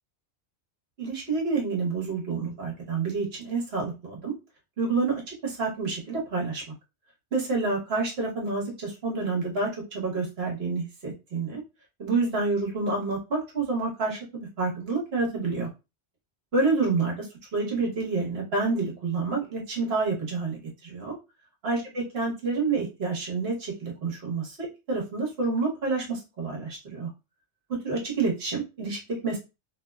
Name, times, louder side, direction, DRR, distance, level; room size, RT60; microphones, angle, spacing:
voice 1, 1.0-4.3 4.8-6.6 7.3-11.6 12.0-14.2 14.6-15.7 16.5-17.3 17.5-21.2 21.6-24.6 24.9-27.1 27.8-29.4, right 4 dB, 65° right, -1 dB, 1.2 m, -28 dB
2.8 x 2.1 x 2.2 m, 0.27 s
omnidirectional pair, 1.2 m